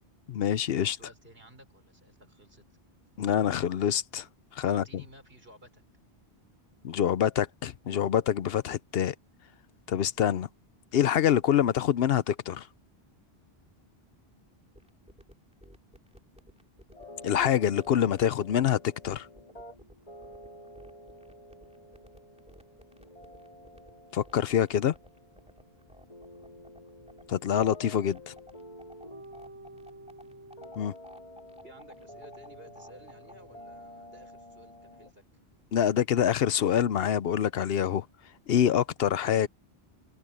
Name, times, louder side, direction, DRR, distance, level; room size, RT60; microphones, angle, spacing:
voice 1, 0.3-1.0 3.2-4.3 4.5-4.8 6.8-9.1 9.9-10.5 10.9-12.7 17.2-19.3 24.1-24.9 27.3-28.3 30.8-30.9 35.7-38.1 38.5-39.5, left 9 dB, 75° left, 0.8 m, -26 dB
voice 2, 0.9-2.7 4.6-5.8 31.6-35.2, right 1 dB, 65° right, 6.0 m, -54 dB
sound 1, 14.7-33.5, equal, 5° right, 3.1 m, -53 dB
sound 2, 16.9-35.1, left 1 dB, 40° left, 2.7 m, -49 dB
omnidirectional pair, 1.0 m